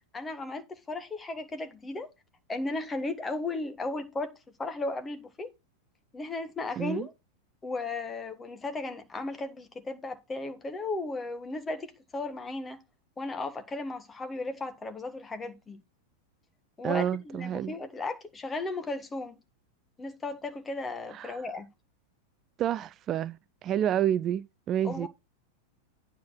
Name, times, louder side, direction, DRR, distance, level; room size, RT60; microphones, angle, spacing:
voice 1, 0.1-2.1 2.5-5.5 6.1-7.1 7.6-12.8 13.2-15.8 16.8-19.4 20.0-21.7 24.8-25.1, left 2 dB, 15° left, 1.5 m, -35 dB
voice 2, 6.8-7.1 16.8-17.7 21.1-21.5 22.6-23.4 23.6-25.1, right 10 dB, 30° right, 0.4 m, -29 dB
9.4 x 4.5 x 5.9 m
figure-of-eight pair, 90°, 0 cm